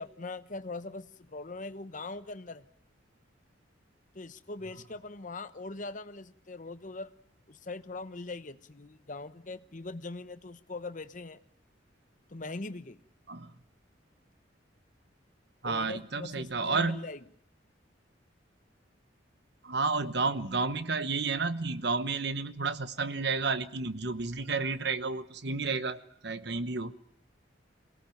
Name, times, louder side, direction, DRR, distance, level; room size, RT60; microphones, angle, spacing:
voice 1, 0.0-2.7 4.1-7.1 7.5-11.4 12.3-13.0 15.6-17.2, left 3 dB, 45° left, 12 dB, 1.0 m, -41 dB
voice 2, 15.6-17.1 19.6-26.9, right 4 dB, 60° right, 13 dB, 1.1 m, -31 dB
23.0 x 17.5 x 9.1 m, 0.69 s
head